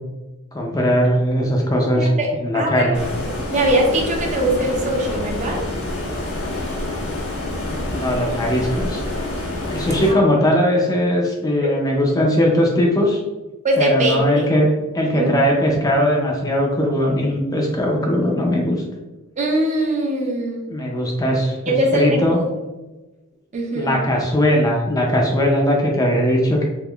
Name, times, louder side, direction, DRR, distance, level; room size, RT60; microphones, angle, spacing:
voice 1, 0.5-2.1 2.4-3.1 7.9-9.0 9.7-13.2 13.8-14.7 14.9-18.8 20.7-22.4 23.7-26.6, equal, 15° left, -1 dB, 0.4 m, -19 dB
voice 2, 2.0-2.3 2.5-2.9 3.2-5.6 10.0-10.2 11.6-11.8 13.6-14.5 15.1-15.3 19.4-20.6 21.7-22.5 23.5-24.0, right 1 dB, 35° right, 1 dB, 0.5 m, -21 dB
Stream, 2.9-10.1, left 1 dB, 80° left, 1.2 m, -27 dB
3.6 x 2.9 x 2.3 m, 1.1 s
head